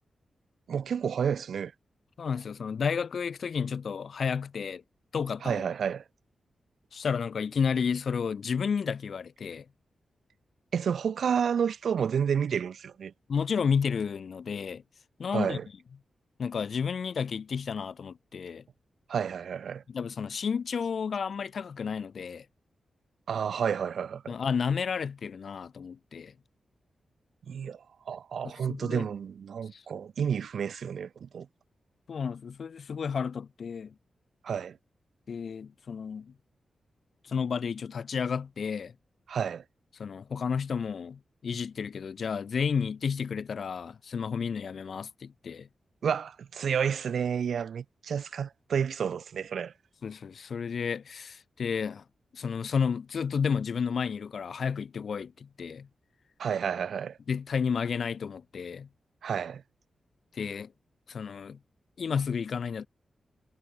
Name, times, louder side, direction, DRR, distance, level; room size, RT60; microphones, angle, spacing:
voice 1, 0.7-1.7 5.4-6.0 10.7-13.1 15.3-15.6 19.1-19.8 23.3-24.3 27.5-31.5 34.4-34.8 39.3-39.6 46.0-49.7 56.4-57.2 59.2-59.6, right 7 dB, 70° right, 6.1 m, -30 dB
voice 2, 2.2-4.8 5.1-5.6 6.9-9.7 13.3-14.8 15.2-15.6 16.4-18.6 19.9-22.5 24.3-26.3 28.4-29.1 29.7-29.8 32.1-33.9 35.3-36.3 37.2-38.9 40.0-45.7 50.0-52.0 52.3-55.9 57.3-58.9 60.3-60.7 61.1-61.6 62.0-62.9, left 6 dB, 55° left, 6.5 m, -31 dB
wide cardioid pair, 160°, 0 cm